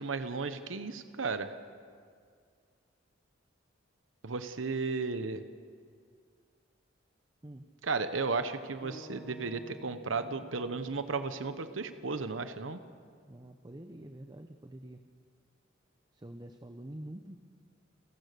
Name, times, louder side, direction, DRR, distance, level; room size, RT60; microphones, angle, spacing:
voice 1, 0.0-1.5 4.2-5.4 7.8-12.8, right 4 dB, 90° right, 10 dB, 1.0 m, -34 dB
sound 1, 8.8-13.1, left 1 dB, 25° left, 1.5 m, -53 dB
voice 2, 13.3-15.0 16.1-17.4, right 1 dB, 20° right, 7 dB, 0.8 m, -46 dB
29.5 x 14.5 x 6.8 m, 2.1 s
head